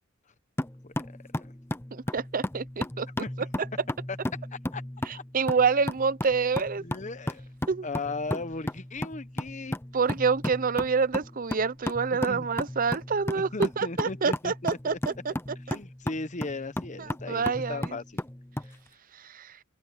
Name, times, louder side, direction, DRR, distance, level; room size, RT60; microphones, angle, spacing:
sound 1, 0.6-18.7, left 1 dB, 10° left, 0.8 m, -35 dB
voice 1, 1.9-3.1 5.1-6.8 7.7-7.9 9.9-15.3 15.7-15.8 17.0-18.0 19.2-19.6, right 5 dB, 45° right, 0.7 m, -27 dB
voice 2, 6.8-7.4 7.8-9.8 12.3-12.7 13.3-15.0 15.7-18.0, left 3 dB, 40° left, 1.0 m, -37 dB
open air
head